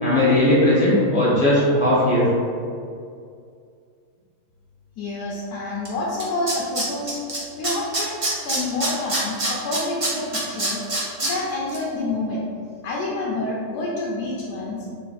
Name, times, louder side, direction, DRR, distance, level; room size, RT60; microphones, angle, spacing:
voice 1, 0.0-2.3, left 1 dB, 5° right, -8 dB, 0.7 m, -18 dB
voice 2, 5.0-7.2 7.6-10.8 11.2-12.4 12.8-14.8, left 2 dB, 80° left, -5 dB, 1.1 m, -28 dB
Tools, 5.8-5.9 6.2-7.4 7.6-11.3 11.7-11.8, right 2 dB, 40° right, 0.4 m, -24 dB
3.2 x 2.4 x 4.0 m, 2.3 s
omnidirectional pair, 1.7 m